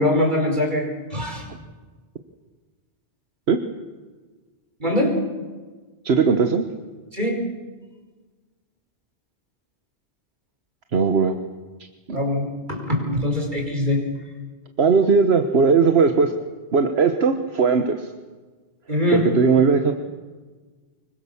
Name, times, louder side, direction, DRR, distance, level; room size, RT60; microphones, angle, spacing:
voice 1, 0.0-1.4 4.8-5.1 7.1-7.4 12.1-14.0 18.9-19.2, left 1 dB, 45° right, 2 dB, 5.2 m, -22 dB
voice 2, 6.0-6.7 10.9-11.4 12.1-12.2 14.8-16.3 16.7-18.1 19.1-19.9, right 5 dB, 75° right, 7 dB, 1.5 m, -18 dB
25.0 x 23.0 x 7.2 m, 1.4 s
omnidirectional pair, 1.1 m